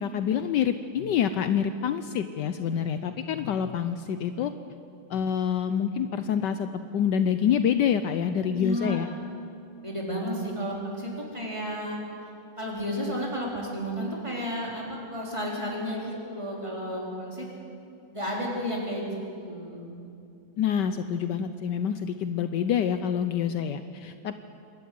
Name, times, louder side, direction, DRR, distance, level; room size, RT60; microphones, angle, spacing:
voice 1, 0.0-4.5 5.1-9.1 20.6-24.3, left 8 dB, 70° left, 10 dB, 1.2 m, -27 dB
voice 2, 8.5-9.0 9.8-12.0 12.6-17.5 18.1-20.1, equal, 15° right, -3 dB, 4.2 m, -32 dB
26.5 x 12.0 x 9.5 m, 2.7 s
omnidirectional pair, 2.1 m